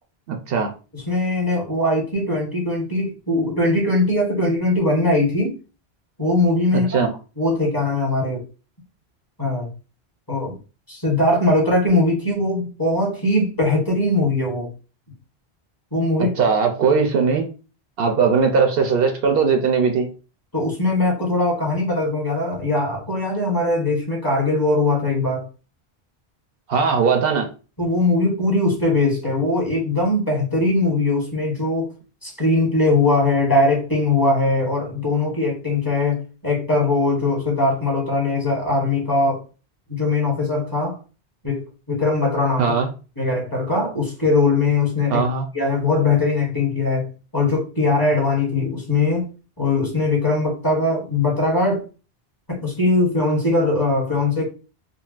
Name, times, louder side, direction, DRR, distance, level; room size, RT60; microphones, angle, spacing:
voice 1, 0.3-0.7 6.9-7.1 16.4-17.5 18.0-20.1 26.7-27.5 42.6-42.9 45.1-45.5, right 5 dB, 70° right, 4 dB, 0.7 m, -19 dB
voice 2, 0.9-5.5 6.2-7.1 7.4-8.4 9.4-9.7 10.3-10.6 10.9-14.7 15.9-16.3 20.5-25.5 27.8-31.9 32.2-39.4 39.9-41.0 41.4-42.7 43.2-45.2 45.5-47.1 47.3-49.2 49.6-51.9 52.5-54.5, left 2 dB, 20° left, -3 dB, 1.0 m, -20 dB
3.8 x 2.0 x 2.3 m, 0.33 s
omnidirectional pair, 1.1 m